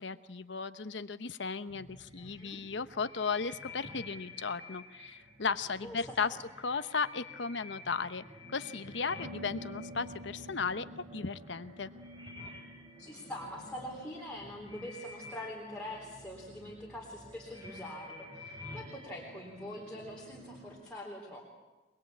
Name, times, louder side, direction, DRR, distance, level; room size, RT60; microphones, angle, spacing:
voice 1, 0.0-11.9, left 5 dB, 75° left, 12 dB, 1.0 m, -36 dB
sound 1, 1.7-20.8, left 1 dB, 25° right, 4.2 m, -49 dB
voice 2, 2.2-2.6 5.8-6.0 6.3-6.4 13.0-21.4, left 1 dB, 5° left, -4 dB, 3.7 m, -44 dB
23.5 x 21.5 x 8.6 m, 1.2 s
head